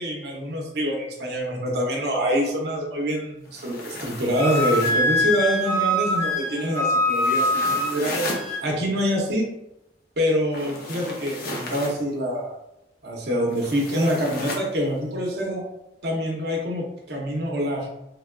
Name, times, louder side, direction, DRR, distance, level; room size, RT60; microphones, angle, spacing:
voice 1, 0.0-9.5 10.2-12.6 13.0-15.6 16.0-17.9, equal, 65° right, -1 dB, 0.7 m, -26 dB
sound 1, 3.4-5.1 7.1-8.5 10.5-12.0 13.5-14.7, left 2 dB, 55° left, 0.6 m, -34 dB
Wind instrument woodwind instrument, 4.3-8.6, left 1 dB, 15° left, 0.8 m, -23 dB
3.4 x 2.4 x 2.2 m, 0.88 s
head